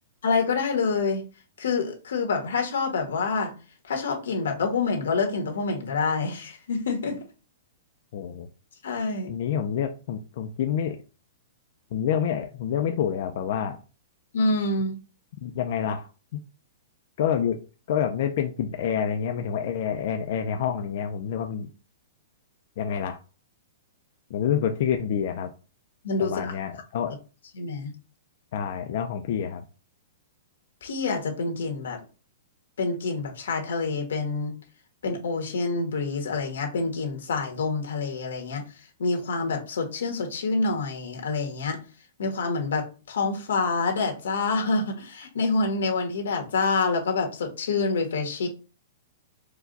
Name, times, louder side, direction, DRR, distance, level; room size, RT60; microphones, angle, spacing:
voice 1, 0.2-1.2 1.6-3.5 3.9-7.2 8.8-9.3 14.3-14.9 26.0-26.5 27.5-27.9 30.8-32.0 32.8-34.5 35.0-38.6 39.0-41.8 42.2-48.5, left 4 dB, 90° left, 1.4 m, -27 dB
voice 2, 8.1-8.5 9.3-11.0 11.9-13.8 15.4-16.1 16.3-16.4 17.2-17.6 17.9-21.7 22.8-23.2 24.3-25.5 26.2-27.2 28.5-29.6, left 8 dB, 45° left, 0.4 m, -27 dB
4.6 x 2.2 x 3.9 m
hypercardioid pair, 175°, 0 cm